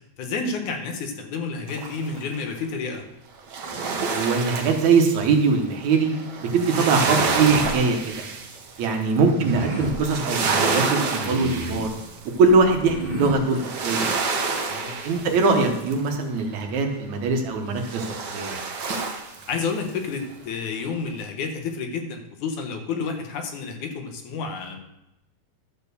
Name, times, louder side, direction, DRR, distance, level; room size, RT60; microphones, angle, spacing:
voice 1, 0.2-3.0 6.7-6.9 8.9-9.0 14.7-15.0 19.5-24.8, left 4 dB, 85° left, 4 dB, 2.7 m, -30 dB
sound 1, 1.7-2.3 3.4-16.2 17.8-19.9 20.3-20.4, right 4 dB, 60° right, 1.1 m, -29 dB
voice 2, 4.1-6.1 6.5-8.2 8.8-11.9 12.4-14.1 15.0-18.5, right 4 dB, 75° right, 3 dB, 2.5 m, -21 dB
sound 2, 7.0-7.8 9.3-10.0 11.1-11.9 12.8-13.4, right 2 dB, 25° right, 1.2 m, -31 dB
12.0 x 4.4 x 6.9 m, 0.90 s
omnidirectional pair, 3.4 m